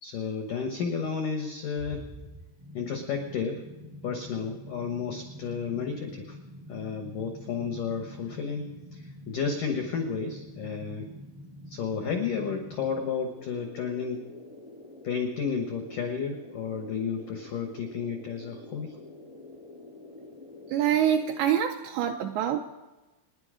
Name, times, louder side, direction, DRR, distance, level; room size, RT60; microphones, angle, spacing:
voice 1, 0.0-2.0 2.7-3.6 4.0-6.4 6.7-8.7 9.3-11.1 11.7-14.2 15.0-18.9, left 6 dB, 90° left, 5 dB, 1.8 m, -32 dB
sound 1, 1.8-21.5, left 1 dB, 30° right, 0.5 m, -46 dB
voice 2, 20.7-22.6, right 10 dB, 80° right, 4 dB, 2.6 m, -25 dB
27.0 x 10.5 x 5.0 m, 1.1 s
omnidirectional pair, 5.7 m